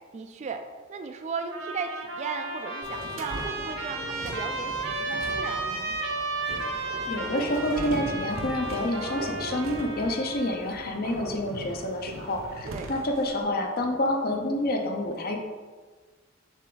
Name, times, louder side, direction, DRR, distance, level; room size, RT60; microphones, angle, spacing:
voice 1, 0.1-0.6 0.9-6.0 12.6-12.9, right 5 dB, 35° right, 6 dB, 0.3 m, -36 dB
Trumpet, 1.5-10.6, right 2 dB, 85° right, 1.2 m, -34 dB
sound 1, 2.8-13.4, right 1 dB, 70° right, 0.8 m, -39 dB
voice 2, 7.1-15.4, left 1 dB, 50° left, 3 dB, 0.7 m, -28 dB
7.3 x 3.3 x 3.9 m, 1.4 s
head